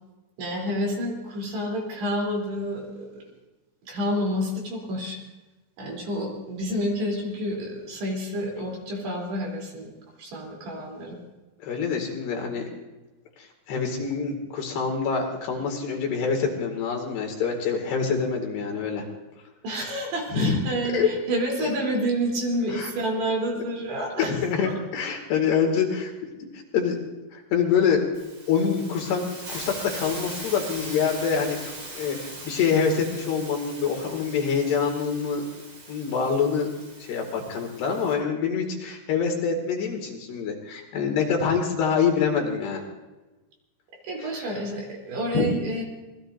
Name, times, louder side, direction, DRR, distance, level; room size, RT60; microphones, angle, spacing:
voice 1, 0.4-3.2 3.8-5.2 5.8-9.9 10.2-11.2 19.6-24.7 44.0-45.8, equal, 60° right, 0 dB, 5.4 m, -29 dB
voice 2, 11.6-12.7 13.7-19.1 20.3-20.5 20.9-21.1 21.6-21.7 22.7-22.9 24.2-26.1 26.7-27.0 27.3-28.0 28.5-29.2 29.5-35.4 35.9-36.7 37.1-42.8 45.3-45.5, left 6 dB, 65° left, 1 dB, 4.1 m, -25 dB
Hiss, 28.1-38.1, right 2 dB, 35° right, 5.7 m, -40 dB
26.5 x 20.5 x 2.6 m, 1.1 s
omnidirectional pair, 5.4 m